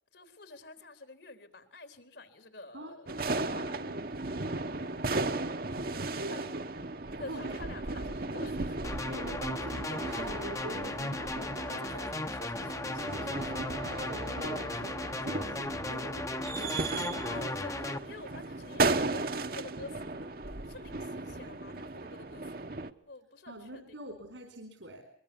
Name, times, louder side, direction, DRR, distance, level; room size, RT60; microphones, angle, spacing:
voice 1, 0.1-3.6 6.3-6.5 7.2-8.9 11.7-13.5 17.2-20.3 20.7-22.5 23.1-23.8, left 3 dB, 75° left, 9 dB, 3.7 m, -48 dB
voice 2, 2.7-5.4 5.8-6.5 7.3-7.6 9.1-11.9 13.2-13.7 14.1-17.0 23.5-25.0, right 1 dB, 85° right, 6 dB, 4.3 m, -45 dB
sound 1, 3.1-22.9, right 3 dB, 50° right, 1.2 m, -36 dB
sound 2, 8.8-18.0, left 2 dB, 15° left, 0.9 m, -36 dB
23.0 x 22.5 x 7.0 m, 0.67 s
head